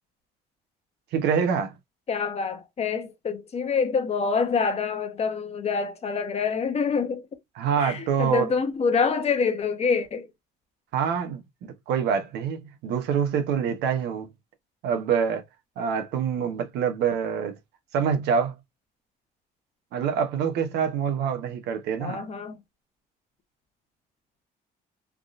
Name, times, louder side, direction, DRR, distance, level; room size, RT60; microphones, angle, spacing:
voice 1, 1.1-1.7 7.6-8.5 10.9-14.3 14.8-15.4 15.8-17.6 17.9-18.5 19.9-22.2, right 7 dB, 85° right, 0.9 m, -26 dB
voice 2, 2.1-7.3 7.8-10.3 22.0-22.6, left 5 dB, 40° left, 0.8 m, -26 dB
3.5 x 2.4 x 2.4 m
cardioid pair, 110°, 17 cm